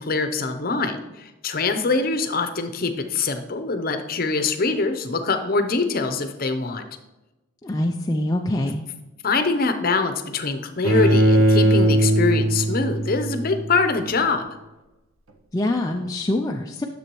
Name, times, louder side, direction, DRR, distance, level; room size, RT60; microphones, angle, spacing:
voice 1, 0.0-6.8 9.2-14.5, left 3 dB, 45° left, 7 dB, 0.7 m, -24 dB
voice 2, 7.6-8.8 15.5-16.9, left 1 dB, 15° left, 1 dB, 0.3 m, -24 dB
Bowed string instrument, 10.8-13.9, right 1 dB, 70° right, 0.8 m, -19 dB
9.7 x 6.8 x 3.0 m, 1.0 s
head